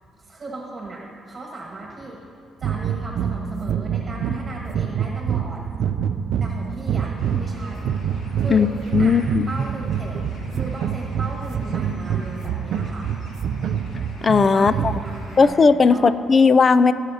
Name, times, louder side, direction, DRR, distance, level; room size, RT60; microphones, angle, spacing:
voice 1, 0.2-2.2 2.6-5.6 6.4-7.9 8.4-8.7 9.0-9.2 9.5-10.2 10.5-13.1 14.5-16.1, right 2 dB, 30° right, -3 dB, 1.4 m, -36 dB
sound 1, 2.6-15.3, right 7 dB, 75° right, 0.4 m, -26 dB
Bird, 7.2-15.5, left 1 dB, 80° left, 1.8 m, -46 dB
voice 2, 8.9-9.5 14.2-14.9 15.4-16.9, left 5 dB, 40° left, 14 dB, 0.4 m, -16 dB
19.0 x 6.5 x 2.8 m, 2.5 s
cardioid pair, 90°, 0 cm